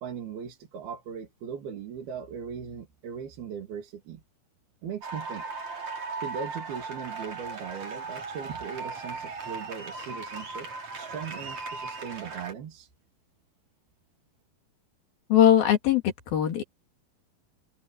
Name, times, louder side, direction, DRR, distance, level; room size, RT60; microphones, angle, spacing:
voice 1, 0.0-4.2 4.8-5.4 6.2-12.9, right 7 dB, 75° right, 4.5 m, -39 dB
sound 1, 5.0-12.5, right 4 dB, 45° right, 5.6 m, -37 dB
voice 2, 15.3-16.6, left 10 dB, 70° left, 4.5 m, -21 dB
omnidirectional pair, 4.4 m